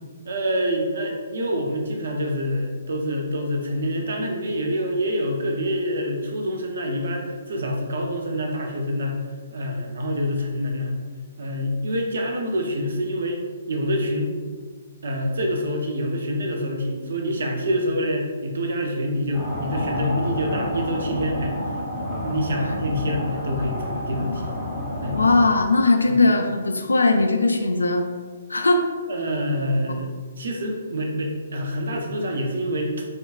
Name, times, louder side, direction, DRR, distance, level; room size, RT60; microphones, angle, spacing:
voice 1, 0.3-9.2 9.5-10.9 11.4-13.4 13.7-14.3 15.0-21.5 22.0-24.5 25.0-25.2 26.1-26.2 29.1-33.1, equal, 55° right, 2 dB, 0.7 m, -26 dB
sound 1, 19.3-25.5, left 1 dB, 15° left, 1.2 m, -29 dB
voice 2, 25.0-28.1 28.5-28.8 29.9-30.0, left 3 dB, 75° left, 5 dB, 0.4 m, -19 dB
5.2 x 3.7 x 2.5 m, 1.5 s
figure-of-eight pair, 125°, 0 cm